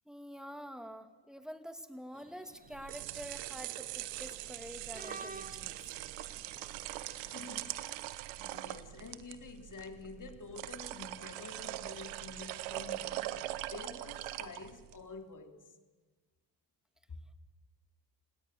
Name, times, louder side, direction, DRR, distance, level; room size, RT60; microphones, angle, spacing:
voice 1, 0.1-5.9, equal, ahead, 2.4 m, -47 dB
sound 1, 2.1-7.4, right 3 dB, 20° right, 1.9 m, -52 dB
sound 2, 2.7-15.0, right 16 dB, 90° right, 1.0 m, -42 dB
voice 2, 7.2-15.8 17.1-17.2, left 4 dB, 40° left, 3.0 m, -49 dB
28.5 x 17.5 x 6.7 m
hypercardioid pair, 50°, 45 cm